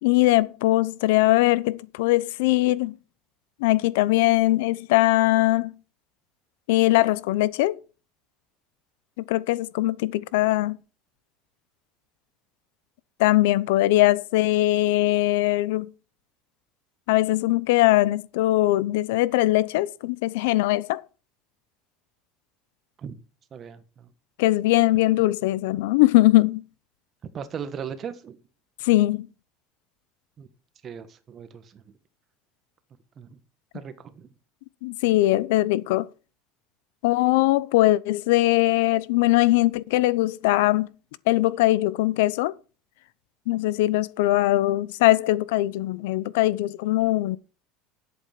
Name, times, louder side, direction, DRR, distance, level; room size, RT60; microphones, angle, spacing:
voice 1, 0.0-3.0 3.6-5.7 6.7-7.8 9.3-10.8 13.2-15.9 17.1-21.0 24.4-26.6 28.8-29.3 34.8-36.1 37.0-40.9 41.3-42.5 43.5-47.4, left 17 dB, 90° left, 0.7 m, -21 dB
voice 2, 23.5-24.1 24.9-25.0 27.3-28.4 30.4-30.5 30.8-31.8 33.2-33.4 33.7-34.3, right 7 dB, 30° right, 1.4 m, -38 dB
11.0 x 8.1 x 5.8 m
cardioid pair, 160°, 0 cm